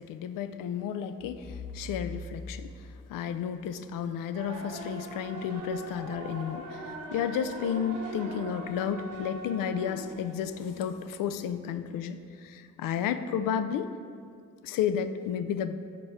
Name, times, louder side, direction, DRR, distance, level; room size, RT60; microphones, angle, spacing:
voice 1, 0.0-2.7 3.1-13.9 14.6-15.7, left 8 dB, 70° left, 10 dB, 0.5 m, -32 dB
sound 1, 1.2-4.0, left 3 dB, 20° left, 1.3 m, -43 dB
sound 2, 4.3-11.0, right 1 dB, 65° right, 1.2 m, -40 dB
5.3 x 4.2 x 5.8 m, 2.2 s
hypercardioid pair, 45°, 34 cm